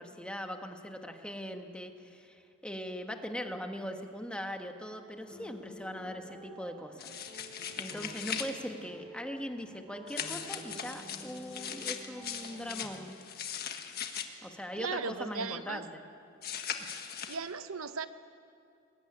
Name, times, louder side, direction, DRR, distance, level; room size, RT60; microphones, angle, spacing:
voice 1, 0.0-7.3 7.8-13.2 14.4-16.0, equal, 5° left, 4 dB, 1.4 m, -40 dB
sound 1, 5.2-12.9, equal, 10° right, 7.9 m, -51 dB
sound 2, 7.0-8.5 10.1-14.3 16.4-17.4, left 8 dB, 45° left, 1.5 m, -39 dB
voice 2, 14.8-15.8 17.3-18.1, right 4 dB, 80° right, 11 dB, 0.9 m, -37 dB
22.5 x 20.0 x 9.9 m, 2.5 s
head